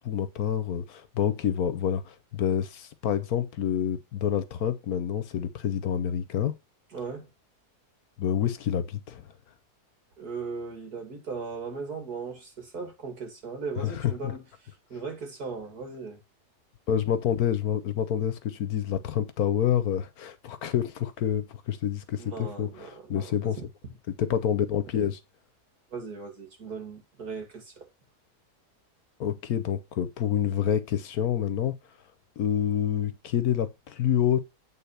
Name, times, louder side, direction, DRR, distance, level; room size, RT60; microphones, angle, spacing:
voice 1, 0.0-6.5 8.2-9.2 13.8-14.3 16.9-23.6 24.2-25.2 29.2-31.8 32.4-34.5, left 9 dB, 70° left, 1.3 m, -28 dB
voice 2, 6.9-7.3 10.2-14.4 14.9-16.2 22.2-23.6 25.9-27.9, right 4 dB, 70° right, 3.1 m, -38 dB
8.6 x 3.9 x 5.7 m
omnidirectional pair, 1.7 m